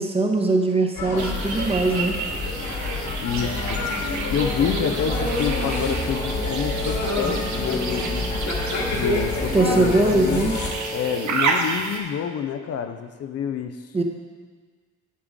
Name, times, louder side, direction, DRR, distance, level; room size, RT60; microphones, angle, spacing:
voice 1, 0.0-2.2 9.5-10.5 13.9-14.0, right 2 dB, 20° right, 2 dB, 0.9 m, -21 dB
sound 1, 1.0-10.7, left 2 dB, 75° left, 1.9 m, -27 dB
sound 2, 1.2-12.0, right 4 dB, 75° right, 1.1 m, -31 dB
voice 2, 3.2-8.4 8.9-10.5 10.9-13.9, left 8 dB, 55° left, 8 dB, 0.5 m, -28 dB
Wind instrument woodwind instrument, 5.0-11.4, equal, 20° left, 0.9 m, -34 dB
8.7 x 8.6 x 3.7 m, 1.5 s
cardioid pair, 145°, 29 cm